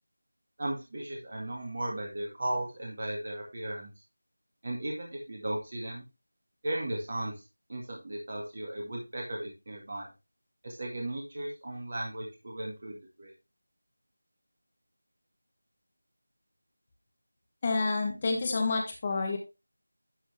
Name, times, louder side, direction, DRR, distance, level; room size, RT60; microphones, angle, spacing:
voice 1, 0.6-3.9 4.6-6.0 6.6-7.3 7.7-10.1 10.6-13.3, right 1 dB, 40° right, -1 dB, 2.1 m, -36 dB
voice 2, 17.6-19.4, left 3 dB, 25° left, 3 dB, 1.2 m, -29 dB
11.5 x 4.4 x 3.4 m, 0.27 s
figure-of-eight pair, 170°, 0 cm